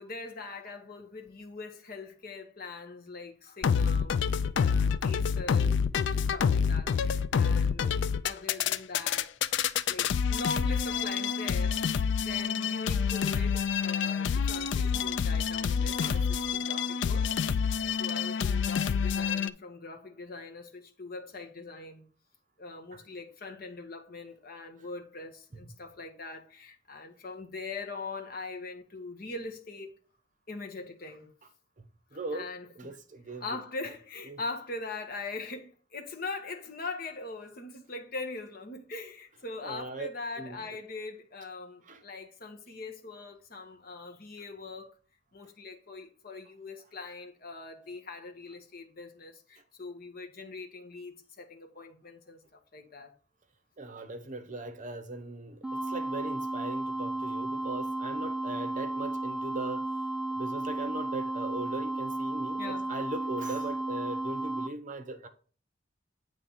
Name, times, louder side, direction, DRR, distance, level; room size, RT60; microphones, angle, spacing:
voice 1, 0.0-4.2 4.6-5.8 6.1-9.6 9.9-17.3 18.0-22.1 22.6-29.9 30.5-31.3 32.1-33.0 33.3-44.9 45.3-53.1 62.6-63.0, left 3 dB, 50° left, 1.0 m, -42 dB
sound 1, 3.6-19.5, left 6 dB, 65° left, 0.3 m, -27 dB
voice 2, 16.0-16.5 22.9-23.0 32.1-32.5 32.8-33.4 34.3-34.4 39.6-40.1 40.4-40.6 41.9-42.0 53.8-59.8 60.4-65.3, right 2 dB, 40° right, 0.8 m, -39 dB
sound 2, 55.6-64.7, right 2 dB, 5° right, 0.4 m, -33 dB
8.3 x 3.3 x 5.5 m
head